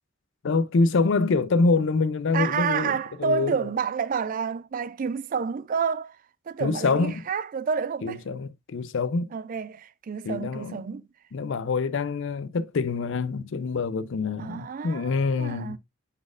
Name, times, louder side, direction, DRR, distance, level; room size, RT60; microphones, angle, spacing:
voice 1, 0.4-3.6 6.6-7.3 8.0-9.3 10.2-10.8 11.3-15.8, left 4 dB, 60° left, 0.5 m, -25 dB
voice 2, 2.3-6.2 6.5-8.2 9.3-11.0 14.4-15.8, right 6 dB, 40° right, 0.3 m, -29 dB
9.7 x 4.2 x 2.4 m
head